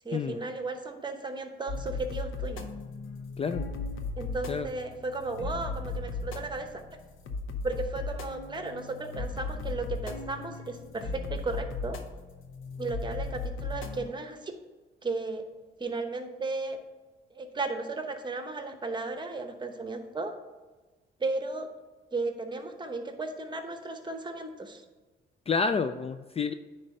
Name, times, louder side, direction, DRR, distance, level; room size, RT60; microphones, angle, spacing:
voice 1, 0.0-2.6 4.2-6.8 7.6-12.0 12.8-14.5 15.0-15.4 15.8-16.8 17.3-20.3 21.2-21.7 22.1-24.8, right 3 dB, 20° right, 6 dB, 1.0 m, -35 dB
sound 1, 1.7-14.1, left 3 dB, 85° left, 0.8 m, -37 dB
voice 2, 3.4-3.7 4.5-4.7 25.5-26.5, left 5 dB, 30° left, 9 dB, 0.4 m, -29 dB
9.5 x 3.3 x 5.4 m, 1.3 s
cardioid pair, 90°, 20 cm